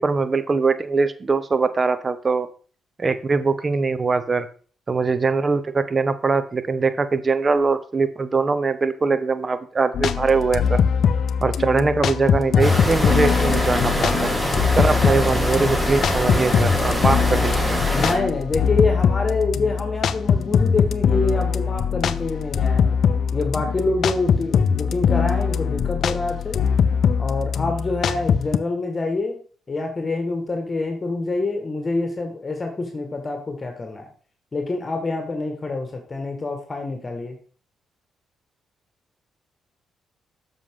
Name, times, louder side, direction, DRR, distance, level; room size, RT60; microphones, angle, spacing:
voice 1, 0.0-2.5 3.0-4.5 4.9-10.8 11.4-14.3 14.8-17.8, right 4 dB, 35° right, 13 dB, 0.8 m, -22 dB
sound 1, 9.9-28.6, left 7 dB, 65° left, 0.4 m, -22 dB
sound 2, 12.6-18.1, equal, ahead, 3.7 m, -24 dB
voice 2, 17.9-23.0 23.3-26.6 27.2-29.4 29.7-34.1 34.5-37.4, left 3 dB, 30° left, 3 dB, 1.5 m, -26 dB
7.4 x 5.7 x 3.7 m, 0.42 s
supercardioid pair, 65°, 0 cm